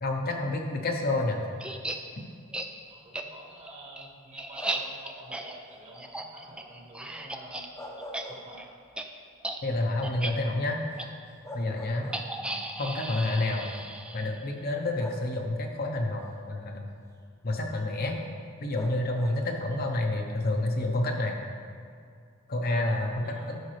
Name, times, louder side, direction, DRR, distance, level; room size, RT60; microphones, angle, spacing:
voice 1, 0.0-1.4 9.6-10.8 11.5-12.1 12.8-13.7 14.1-16.9 17.4-18.2 18.6-21.4 22.5-23.6, left 2 dB, 45° left, 2 dB, 0.8 m, -29 dB
sound 1, 1.6-2.0 2.5-2.7 3.1-3.2 3.7-7.7 8.0-8.2 8.5-8.7 9.0-9.1 9.4-9.6 10.0-10.3 11.0-11.1 12.1-14.5, right 2 dB, 5° right, 0.3 m, -36 dB
voice 2, 2.9-7.6 8.3-8.7 12.4-12.7 22.9-23.5, right 1 dB, 30° right, -2 dB, 1.4 m, -49 dB
sound 2, 4.6-5.1 7.5-8.9 9.3-9.4 11.0-11.1 11.4-12.6 13.6-13.7 15.0-15.7 18.7-19.6, equal, 15° left, 0.8 m, -43 dB
12.5 x 5.3 x 3.2 m, 2.3 s
head